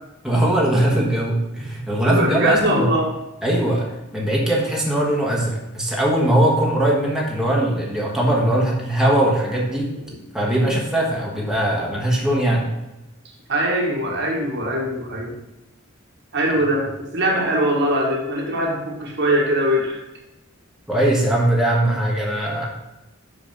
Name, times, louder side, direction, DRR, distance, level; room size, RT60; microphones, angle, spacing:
voice 1, 0.2-2.9 3.4-9.9 10.3-12.6 20.9-22.7, right 1 dB, 5° right, -4 dB, 1.3 m, -20 dB
voice 2, 2.0-3.1 9.9-10.1 10.4-10.6 13.5-15.3 16.3-20.0, equal, 60° right, -1 dB, 1.5 m, -22 dB
6.0 x 5.6 x 5.3 m, 0.97 s
head